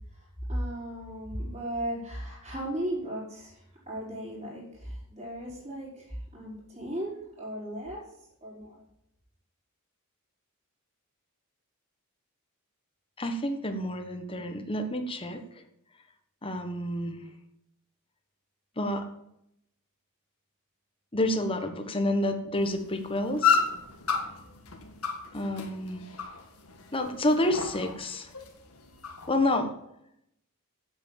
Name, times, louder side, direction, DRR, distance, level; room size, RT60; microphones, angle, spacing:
voice 1, 0.1-8.0 8.4-8.8, right 1 dB, 30° right, -5 dB, 5.4 m, -36 dB
voice 2, 13.2-15.4 16.4-17.2 18.8-19.0 21.1-23.7 25.3-26.0 26.9-28.3 29.3-29.7, left 1 dB, 25° left, 6 dB, 1.3 m, -29 dB
sound 1, 22.6-29.4, left 6 dB, 80° left, 1.7 m, -32 dB
8.8 x 7.9 x 7.5 m, 0.78 s
head